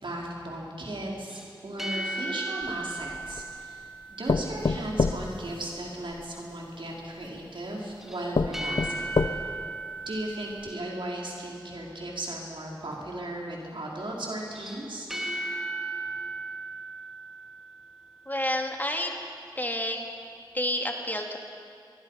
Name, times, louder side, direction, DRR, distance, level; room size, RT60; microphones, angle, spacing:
voice 1, 0.0-9.2 10.0-15.1, right 1 dB, 80° right, -3 dB, 4.6 m, -36 dB
sound 1, 1.3-4.6 8.0-11.3 14.4-18.0, right 2 dB, 5° right, 2.7 m, -36 dB
sound 2, 2.6-3.5 4.3-6.2 7.2-7.3 7.9-8.0 8.3-9.7 10.2-10.3 10.6-10.7, left 4 dB, 85° left, 0.8 m, -28 dB
voice 2, 18.3-19.1 19.6-20.1 20.5-21.4, left 1 dB, 20° left, 2 dB, 2.4 m, -29 dB
23.0 x 23.0 x 5.8 m, 2.4 s
wide cardioid pair, 60°, 8 cm